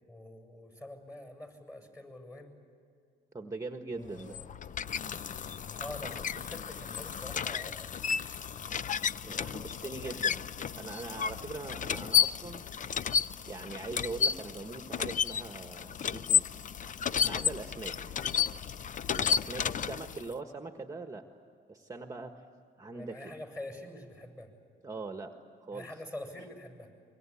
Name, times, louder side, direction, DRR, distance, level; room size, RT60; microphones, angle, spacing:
voice 1, 0.1-2.5 3.9-4.5 5.8-7.9 9.3-10.2 22.9-24.5 25.7-26.9, left 1 dB, 15° left, 6 dB, 7.0 m, -46 dB
voice 2, 3.3-4.4 9.2-10.4 10.7-12.6 13.5-16.4 17.2-18.0 19.2-21.2 21.7-22.4 22.8-23.3 24.8-25.3 25.6-25.9 26.4-26.5, right 3 dB, 15° right, 5 dB, 1.5 m, -41 dB
sound 1, 4.1-20.3, left 7 dB, 40° left, 0.5 m, -32 dB
25.0 x 23.5 x 8.6 m, 2.4 s
cardioid pair, 90°, 20 cm